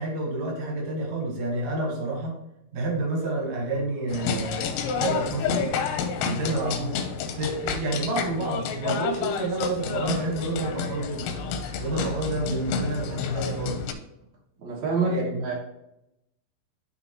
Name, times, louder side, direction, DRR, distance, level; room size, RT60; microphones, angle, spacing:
voice 1, 0.0-2.3 2.7-4.7 5.0-5.7 6.2-11.4 11.8-13.8 15.0-15.5, right 2 dB, 60° right, -1 dB, 1.9 m, -29 dB
sound 1, 4.1-13.9, left 6 dB, 90° left, 3.0 m, -30 dB
voice 2, 14.6-15.5, right 3 dB, 75° right, -4 dB, 1.6 m, -27 dB
12.0 x 4.0 x 3.0 m, 0.87 s
omnidirectional pair, 5.3 m